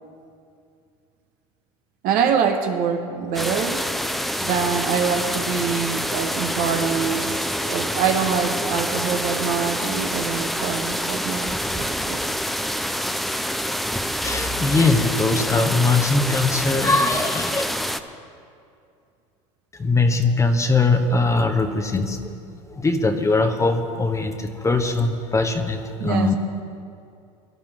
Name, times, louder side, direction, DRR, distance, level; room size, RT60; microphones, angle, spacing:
voice 1, 2.0-3.8 4.4-12.2 26.0-26.3, right 7 dB, 60° right, 4 dB, 1.5 m, -25 dB
sound 1, 3.3-18.0, equal, ahead, 0.7 m, -26 dB
voice 2, 14.2-17.6 19.8-22.4 22.7-26.3, left 3 dB, 20° left, 5 dB, 1.2 m, -21 dB
22.5 x 11.5 x 3.7 m, 2.4 s
hypercardioid pair, 95°, 16 cm